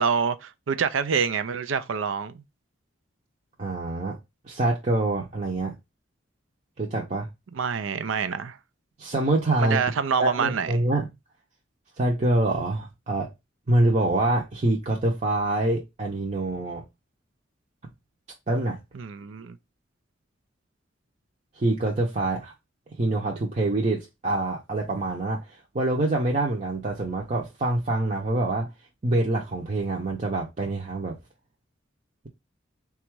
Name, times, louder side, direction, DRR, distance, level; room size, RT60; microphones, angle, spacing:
voice 1, 0.0-2.4 7.5-8.6 9.6-10.8 18.9-19.6, right 6 dB, 90° right, 0.4 m, -26 dB
voice 2, 3.6-4.2 4.4-5.7 6.8-7.3 9.0-9.8 10.2-11.1 12.0-13.3 13.7-16.8 18.5-18.8 21.6-22.5 23.0-28.7 29.0-31.2, right 2 dB, 40° right, 0.7 m, -25 dB
3.9 x 2.4 x 4.5 m
head